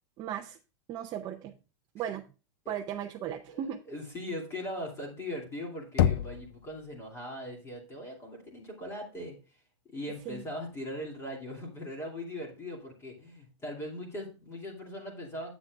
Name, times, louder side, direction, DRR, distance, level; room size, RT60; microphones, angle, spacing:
voice 1, 0.2-0.6 0.9-1.5 1.9-2.2 2.7-3.8 10.3-10.4, right 10 dB, 25° right, 3 dB, 0.6 m, -36 dB
voice 2, 3.5-9.4 9.9-15.5, left 1 dB, 15° left, -1 dB, 2.6 m, -40 dB
Knock, 6.0-6.9, left 10 dB, 50° left, 0.4 m, -27 dB
9.5 x 8.2 x 2.4 m, 0.33 s
supercardioid pair, 150°, 16 cm